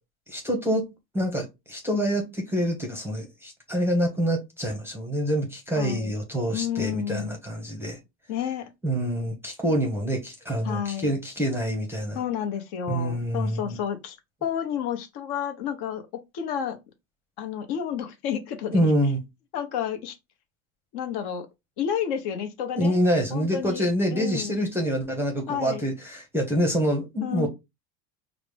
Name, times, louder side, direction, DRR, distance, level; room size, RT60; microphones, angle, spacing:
voice 1, 0.3-0.9 1.1-8.0 8.8-12.2 12.9-13.8 18.7-19.2 22.8-27.5, equal, 5° right, 0.7 m, -26 dB
voice 2, 5.8-6.1 6.5-7.4 8.3-8.7 10.6-11.1 12.1-16.0 16.3-16.8 17.4-18.9 19.5-20.2 20.9-21.5 21.8-23.0 23.3-23.9 24.1-24.6 25.5-25.8 27.2-27.5, left 8 dB, 55° left, 0.9 m, -30 dB
4.9 x 2.0 x 3.3 m
supercardioid pair, 125°, 49 cm